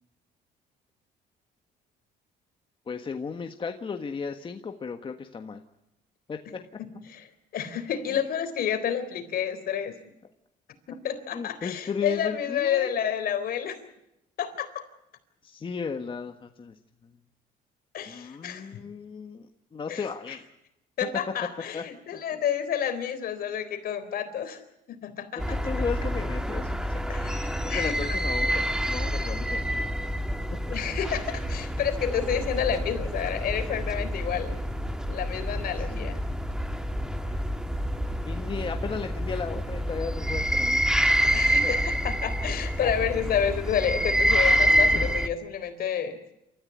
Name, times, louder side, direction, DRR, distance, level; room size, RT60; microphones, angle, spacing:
voice 1, 2.9-5.6 6.3-6.6 11.3-12.9 15.4-16.7 18.1-20.5 21.7-21.8 22.1-22.2 25.4-27.1 27.6-29.7 35.9-36.1 37.2-37.4 38.2-40.9 41.6-41.8 42.8-42.9 44.9-45.1, left 5 dB, 30° left, 6 dB, 1.5 m, -35 dB
voice 2, 7.5-9.9 10.9-13.8 14.4-14.9 17.9-18.7 19.9-20.4 21.0-24.6 24.9-25.5 27.1-28.2 29.1-29.3 30.7-34.6 35.1-36.2 41.3-46.2, left 8 dB, 60° left, 9 dB, 3.8 m, -30 dB
sound 1, 25.4-45.3, equal, 5° right, 1.6 m, -27 dB
28.5 x 14.5 x 9.4 m, 0.87 s
cardioid pair, 110°, 17 cm